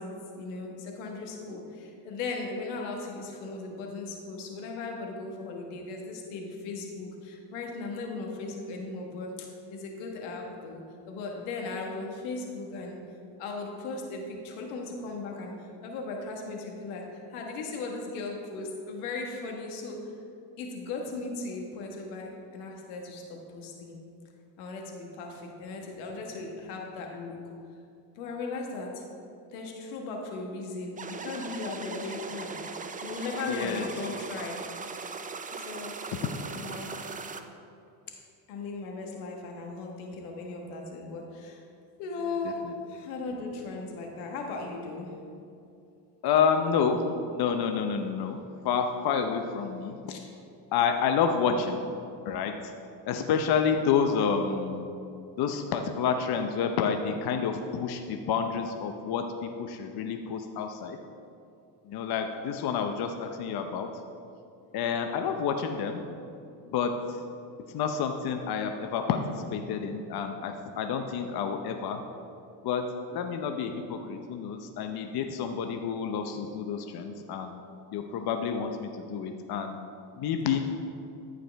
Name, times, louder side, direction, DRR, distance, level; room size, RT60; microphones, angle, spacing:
voice 1, 0.0-13.0 13.4-20.0 20.6-24.0 24.6-27.5 28.1-29.0 29.5-32.6 33.0-34.6 35.5-36.0 36.5-36.9 38.5-41.6 42.0-45.1 50.1-50.2 51.5-51.6, left 3 dB, 80° left, 1 dB, 1.5 m, -37 dB
sound 1, 31.0-37.4, right 4 dB, 15° right, 0.4 m, -39 dB
voice 2, 33.5-33.9 46.2-47.0 47.3-48.4 48.6-49.9 50.7-51.8 52.3-52.7 53.1-54.8 55.4-61.0 61.9-63.9 64.7-66.0 66.7-66.9 67.7-69.2 69.5-72.0 72.6-72.8 73.1-77.6 77.9-79.8 80.2-80.6, left 6 dB, 50° left, 5 dB, 0.7 m, -29 dB
14.0 x 5.0 x 3.4 m, 2.6 s
supercardioid pair, 75°, 50 cm